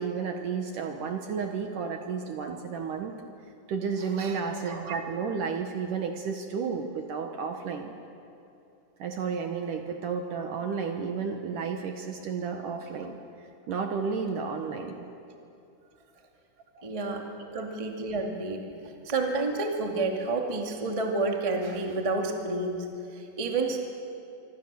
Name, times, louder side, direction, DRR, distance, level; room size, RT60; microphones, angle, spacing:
voice 1, 0.0-3.1 3.7-8.0 9.0-13.2 13.7-15.1 16.8-16.9 17.4-17.7, right 5 dB, 65° right, 4 dB, 2.3 m, -32 dB
voice 2, 16.8-17.2 17.5-23.8, right 3 dB, 20° right, 1 dB, 0.9 m, -30 dB
25.5 x 25.5 x 6.9 m, 2.7 s
omnidirectional pair, 5.0 m